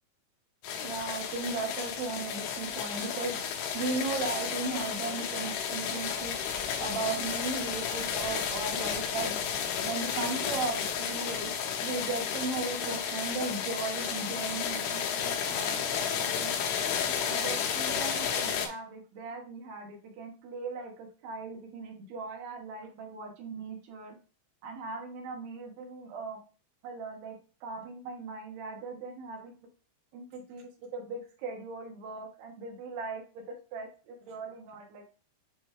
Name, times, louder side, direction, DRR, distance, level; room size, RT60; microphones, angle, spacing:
sound 1, 0.6-18.7, left 7 dB, 85° left, 3.3 m, -32 dB
voice 1, 0.8-3.3 3.7-6.3 6.8-9.3 9.8-11.5 11.8-16.5 17.2-24.2 24.6-26.4 26.8-27.4 27.6-29.7 30.1-35.0, right 3 dB, 70° right, 1 dB, 3.2 m, -37 dB
9.1 x 3.2 x 3.2 m, 0.35 s
omnidirectional pair, 5.3 m